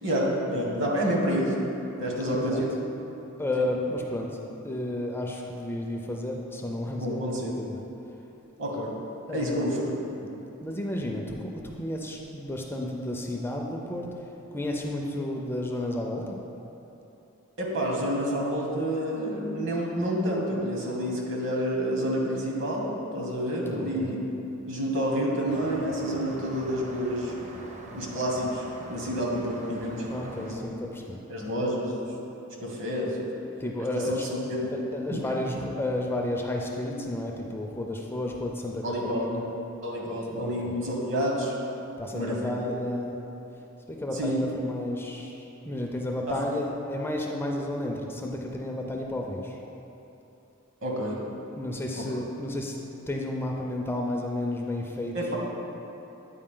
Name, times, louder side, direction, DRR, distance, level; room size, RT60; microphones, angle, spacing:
voice 1, 0.0-1.5 2.0-2.7 3.6-3.7 7.0-7.5 8.6-8.9 9.3-9.8 10.2-10.3 17.6-24.2 24.7-27.3 27.9-30.1 30.4-30.6 31.3-32.0 32.6-33.3 33.9-34.8 35.1-35.2 38.8-39.3 39.8-41.5 42.1-42.6 44.1-44.4 46.3-46.6 50.8-51.2 55.1-55.4, equal, 60° right, -2 dB, 1.3 m, -29 dB
voice 2, 3.4-4.4 4.6-7.3 7.6-7.8 9.3-9.8 10.6-14.1 14.5-16.4 23.6-24.2 30.1-31.2 33.3-34.3 34.7-39.5 40.3-40.7 42.0-43.2 43.9-49.6 51.6-52.8 53.1-55.1, left 1 dB, 10° left, 0 dB, 0.4 m, -32 dB
sound 1, 25.5-30.5, right 1 dB, 30° right, 0.6 m, -43 dB
8.5 x 4.7 x 3.7 m, 3.0 s
head